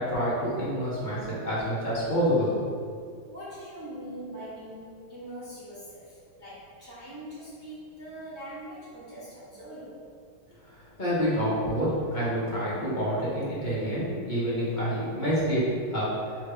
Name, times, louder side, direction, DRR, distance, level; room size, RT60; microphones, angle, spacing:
voice 1, 0.0-2.5 2.8-2.9 11.0-15.6 15.9-16.1, equal, 40° left, -9 dB, 0.7 m, -27 dB
voice 2, 3.3-10.0, right 1 dB, 10° right, -12 dB, 1.1 m, -42 dB
3.2 x 3.2 x 4.6 m, 2.2 s
omnidirectional pair, 2.1 m